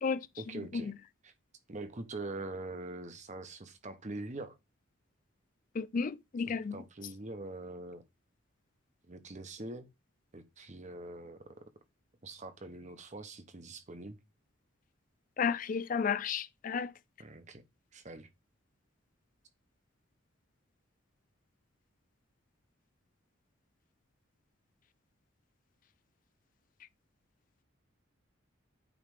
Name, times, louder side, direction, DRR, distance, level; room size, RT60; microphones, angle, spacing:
voice 1, 0.4-0.9 1.2-1.3 1.7-4.6 6.5-8.0 9.0-9.9 10.3-11.7 12.2-14.2 17.2-17.6 17.9-18.3, right 2 dB, 35° right, 0.9 m, -43 dB
voice 2, 5.7-6.8 15.4-16.9, left 6 dB, 40° left, 0.4 m, -32 dB
9.0 x 3.2 x 4.8 m
head